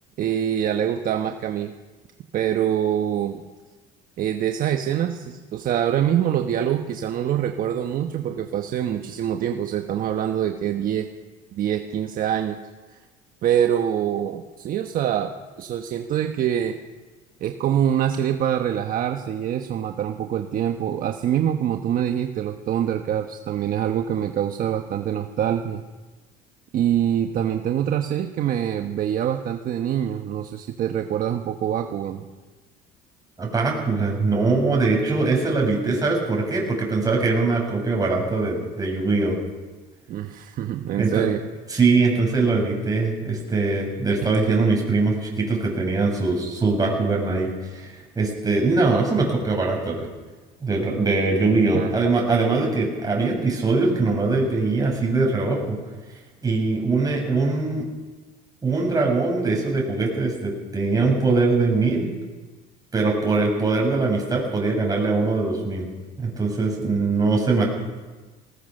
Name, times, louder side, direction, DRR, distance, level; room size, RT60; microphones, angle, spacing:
voice 1, 0.2-1.7 2.3-3.4 4.2-11.1 11.5-12.6 13.4-16.8 17.4-25.8 26.7-32.3 40.1-41.4 51.7-51.9, right 10 dB, 50° right, 5 dB, 1.3 m, -25 dB
voice 2, 33.4-39.3 41.0-41.2 41.7-50.1 50.6-55.8 56.4-57.8 58.6-62.1 62.9-65.9 66.2-67.6, right 3 dB, 20° right, -1 dB, 7.8 m, -22 dB
20.5 x 19.0 x 6.6 m, 1.3 s
cardioid pair, 115°, 18 cm